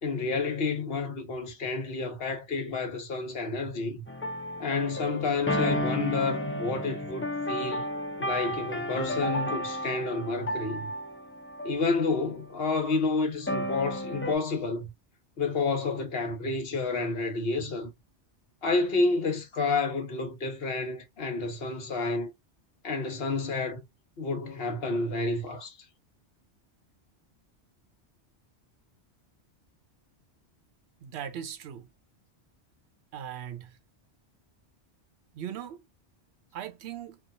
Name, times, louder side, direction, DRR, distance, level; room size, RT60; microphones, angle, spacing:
voice 1, 0.0-4.0 4.6-7.8 8.2-10.9 11.6-14.9 15.4-17.9 18.6-22.3 22.8-23.8 24.2-25.8, left 3 dB, 60° left, 1.1 m, -30 dB
sound 1, 4.1-12.0 12.6-12.9 13.5-14.4, equal, 20° left, 0.4 m, -32 dB
voice 2, 31.0-31.9 33.1-33.8 35.3-35.8 36.5-37.2, right 9 dB, 75° right, 0.9 m, -39 dB
3.1 x 2.3 x 2.5 m
omnidirectional pair, 1.2 m